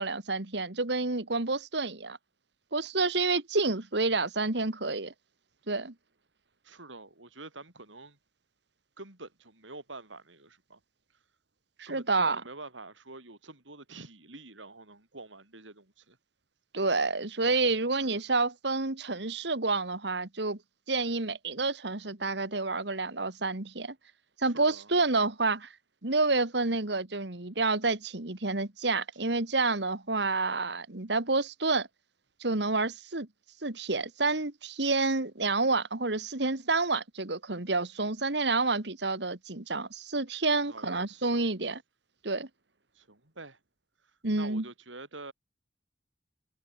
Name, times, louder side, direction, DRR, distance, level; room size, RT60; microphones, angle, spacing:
voice 1, 0.0-2.2 2.7-5.1 5.7-5.9 11.8-12.4 16.7-20.6 20.9-24.0 24.4-25.7 26.0-31.9 32.4-33.3 33.6-41.8 42.2-42.5 44.2-44.6, right 3 dB, 65° right, 1.9 m, -29 dB
voice 2, 6.6-8.2 9.0-10.8 11.9-16.2 17.9-18.2 24.4-24.9 40.7-41.4 43.0-43.6 44.4-45.3, right 2 dB, 85° right, 5.6 m, -47 dB
head